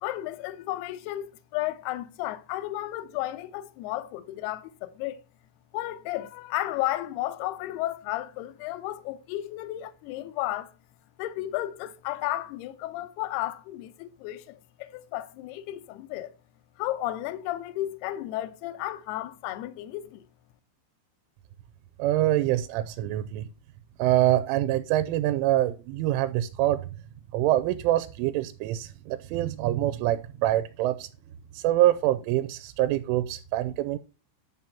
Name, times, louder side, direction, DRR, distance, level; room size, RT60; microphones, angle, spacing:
voice 1, 0.0-5.2 5.7-10.7 11.2-16.3 16.8-20.2, left 15 dB, 75° left, 2.5 m, -33 dB
voice 2, 22.0-23.5 24.0-26.9 27.3-31.1 31.5-34.0, right 14 dB, 90° right, 3.2 m, -25 dB
10.5 x 7.4 x 5.7 m
omnidirectional pair, 5.5 m